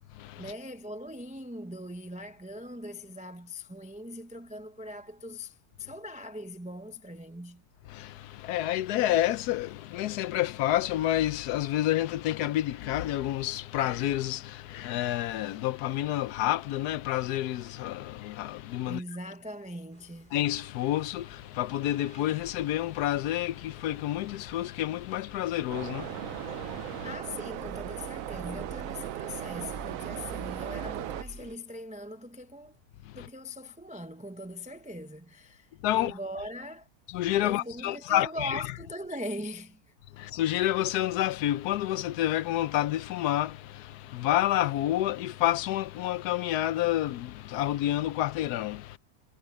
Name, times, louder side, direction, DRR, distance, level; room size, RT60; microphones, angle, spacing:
voice 1, 0.4-7.6 18.8-20.3 27.0-32.8 33.1-36.9 37.4-39.8, left 1 dB, 5° right, 0.6 m, -40 dB
voice 2, 7.9-19.0 20.3-27.1 33.1-33.3 35.8-36.1 37.1-38.6 40.2-49.0, left 14 dB, 85° left, 1.2 m, -29 dB
sound 1, 19.9-31.6, right 1 dB, 30° right, 5.4 m, -49 dB
sound 2, 25.7-31.2, right 13 dB, 65° right, 0.9 m, -37 dB
omnidirectional pair, 1.6 m